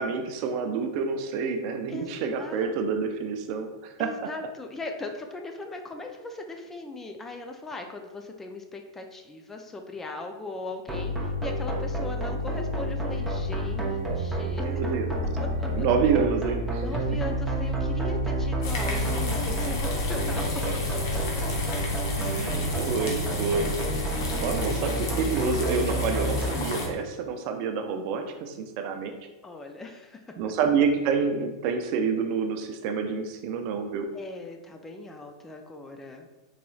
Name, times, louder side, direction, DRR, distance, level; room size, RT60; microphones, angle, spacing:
voice 1, 0.0-4.1 14.6-15.2 15.7-16.8 20.3-20.4 20.6-20.7 22.2-23.8 24.1-24.2 24.4-29.2 30.4-34.1, right 5 dB, 50° right, 5 dB, 0.4 m, -28 dB
voice 2, 2.4-2.7 4.0-14.7 15.4-15.7 16.8-20.5 20.9-21.4 29.4-30.2 34.1-36.3, left 2 dB, 15° left, 4 dB, 0.3 m, -39 dB
sound 1, 10.9-26.5, equal, 5° right, 0.8 m, -29 dB
sound 2, 13.1-23.1, right 5 dB, 25° right, 1.2 m, -39 dB
sound 3, 18.6-26.9, left 3 dB, 75° left, 0.8 m, -32 dB
3.9 x 2.9 x 2.3 m, 1.1 s
hypercardioid pair, 110°, 2 cm